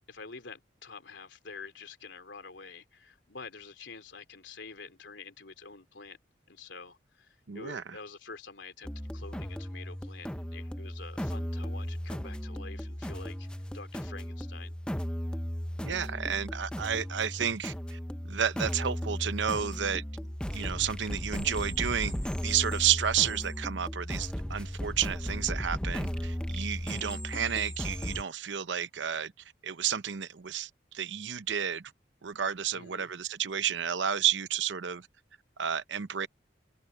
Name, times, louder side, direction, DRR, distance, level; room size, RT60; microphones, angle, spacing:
voice 1, 0.1-6.2 6.5-14.7 32.7-33.1, left 4 dB, 80° left, 3.2 m, -47 dB
voice 2, 7.5-8.0 15.8-18.0 18.3-20.0 20.5-22.1 22.4-29.3 29.6-31.9 32.2-35.1 35.6-36.3, right 8 dB, 80° right, 0.7 m, -31 dB
sound 1, 8.8-28.2, equal, 5° left, 0.6 m, -36 dB
head